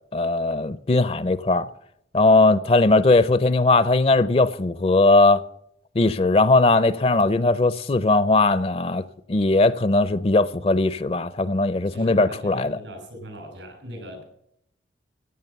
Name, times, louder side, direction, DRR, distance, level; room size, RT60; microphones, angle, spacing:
voice 1, 0.1-1.7 2.1-5.4 6.0-12.8, left 2 dB, 30° left, 0.4 m, -19 dB
voice 2, 11.9-14.2, equal, 80° right, 5.8 m, -39 dB
15.0 x 9.3 x 6.8 m
head